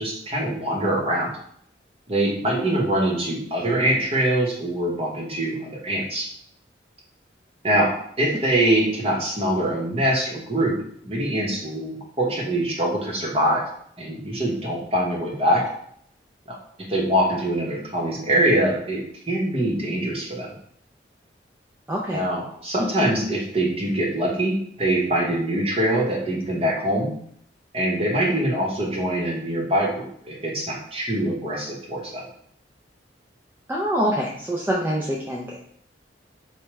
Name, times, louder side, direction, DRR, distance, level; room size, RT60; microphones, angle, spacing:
voice 1, 0.0-1.4 2.1-6.3 7.6-10.8 11.0-13.6 14.0-15.6 16.5-16.6 16.9-19.0 19.3-20.5 22.1-27.1 27.7-32.2, right 1 dB, 30° right, -2 dB, 0.8 m, -23 dB
voice 2, 21.9-22.2 33.7-35.6, equal, 10° right, -4 dB, 0.4 m, -25 dB
4.6 x 2.2 x 3.0 m, 0.66 s
head